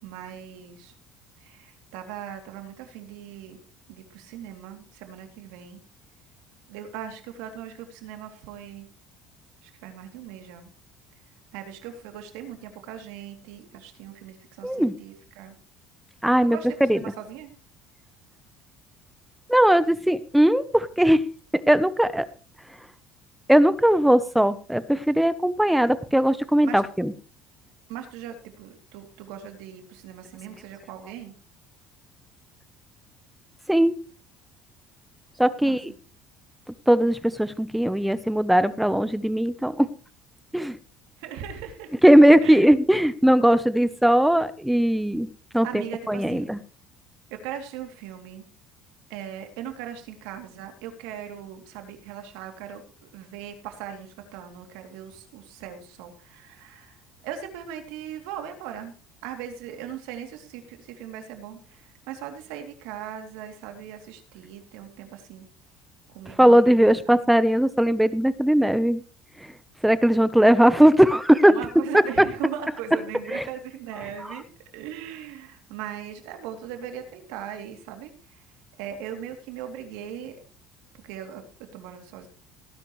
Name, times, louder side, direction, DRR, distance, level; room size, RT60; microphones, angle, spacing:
voice 1, 0.0-0.9 1.4-3.6 3.9-5.8 6.7-8.9 9.6-10.7 11.5-15.6 16.4-17.5 26.6-26.8 27.9-31.3 35.6-35.8 41.2-41.9 42.4-42.6 45.6-46.5 47.3-48.5 49.1-58.9 59.2-65.5 66.1-67.2 71.5-74.5 74.7-78.4 78.8-80.4 81.0-82.3, right 9 dB, 90° right, 5 dB, 2.8 m, -39 dB
voice 2, 14.6-14.9 16.2-16.6 16.9-17.0 19.5-21.2 21.7-22.2 23.5-27.1 33.7-33.9 35.4-35.9 36.9-39.9 40.5-40.8 42.0-45.3 45.5-46.6 66.3-69.0 69.4-69.5 69.8-71.6 73.3-73.4, equal, 5° right, 14 dB, 0.8 m, -19 dB
18.0 x 10.5 x 3.2 m, 0.38 s
cardioid pair, 125°, 0 cm